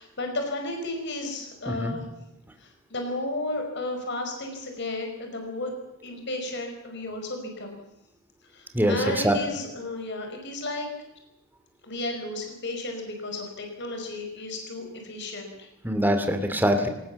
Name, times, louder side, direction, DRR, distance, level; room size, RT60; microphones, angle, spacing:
voice 1, 0.0-2.0 2.6-5.7 6.0-7.8 8.5-10.9 11.8-15.7, left 2 dB, 55° left, 3 dB, 5.1 m, -33 dB
voice 2, 1.7-2.0 8.7-9.4 15.8-16.9, equal, 10° right, 6 dB, 2.6 m, -23 dB
24.0 x 19.0 x 7.2 m, 0.88 s
head